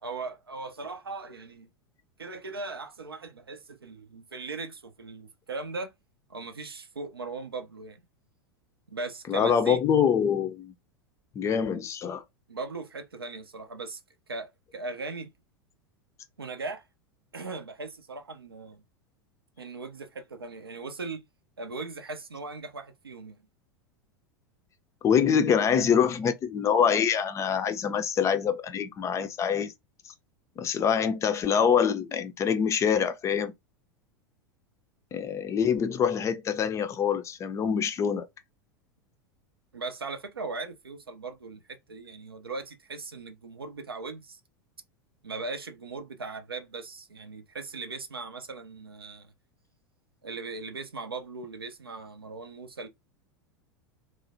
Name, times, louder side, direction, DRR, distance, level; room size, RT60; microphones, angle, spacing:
voice 1, 0.0-1.7 2.2-5.9 6.3-8.0 8.9-9.8 12.5-14.0 14.3-15.3 16.4-16.8 17.3-18.8 19.6-21.2 21.6-23.4 39.7-44.4 45.2-49.3 50.2-52.9, right 3 dB, 80° right, 0.5 m, -38 dB
voice 2, 9.3-10.7 11.4-12.2 25.0-29.7 30.6-33.5 35.1-38.3, left 7 dB, 25° left, 0.4 m, -25 dB
3.1 x 2.0 x 2.5 m
figure-of-eight pair, 85°, 12 cm